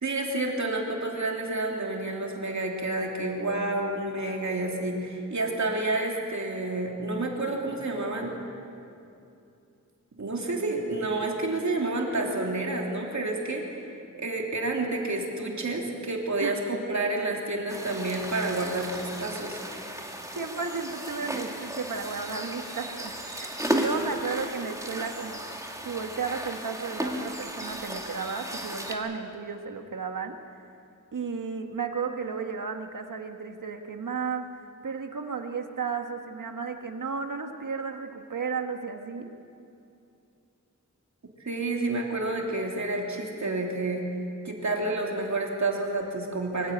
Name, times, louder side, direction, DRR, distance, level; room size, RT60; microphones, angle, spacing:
voice 1, 0.0-8.3 10.2-13.9 14.1-19.6 41.4-44.1 44.4-46.7, right 2 dB, 65° right, -1 dB, 3.1 m, -29 dB
sound 1, 17.7-29.0, right 1 dB, 10° right, 2.3 m, -35 dB
voice 2, 20.3-25.4 25.8-30.4 31.1-39.3, right 5 dB, 85° right, 5 dB, 1.6 m, -34 dB
24.0 x 16.0 x 8.9 m, 2.6 s
wide cardioid pair, 90°, 31 cm